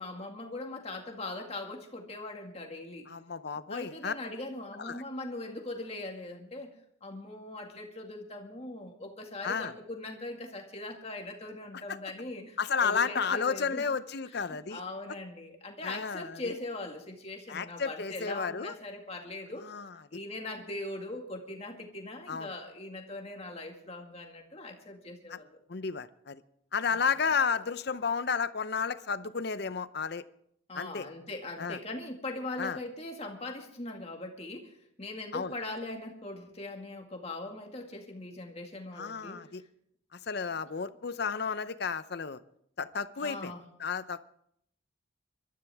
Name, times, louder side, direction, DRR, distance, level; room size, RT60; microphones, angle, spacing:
voice 1, 0.0-3.1 3.7-6.7 7.0-13.9 14.3-19.7 20.1-25.6 26.9-27.1 30.7-39.4 43.2-43.6, left 2 dB, 30° left, 2 dB, 2.0 m, -41 dB
voice 2, 3.1-4.1 4.8-5.0 9.4-9.7 11.9-12.0 12.6-14.8 15.8-16.5 17.5-18.8 19.6-20.2 22.3-22.5 25.3-25.4 25.7-26.4 26.7-30.2 30.7-31.1 31.6-31.8 32.6-32.8 35.3-35.5 39.0-39.6 40.1-42.4 42.8-43.5 43.8-44.2, left 5 dB, 55° left, 14 dB, 0.6 m, -32 dB
23.0 x 13.0 x 3.5 m, 0.70 s
head